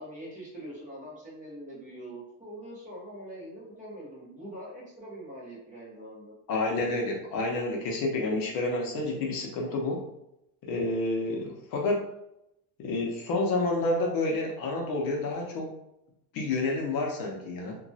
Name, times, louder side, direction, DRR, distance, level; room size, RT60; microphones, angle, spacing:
voice 1, 0.0-6.3, right 1 dB, 15° right, -6 dB, 0.8 m, -43 dB
voice 2, 6.5-10.0 10.6-12.0 12.8-15.7 16.3-17.8, left 2 dB, 55° left, 0 dB, 0.6 m, -29 dB
2.8 x 2.3 x 2.6 m, 0.82 s
cardioid pair, 165°, 43 cm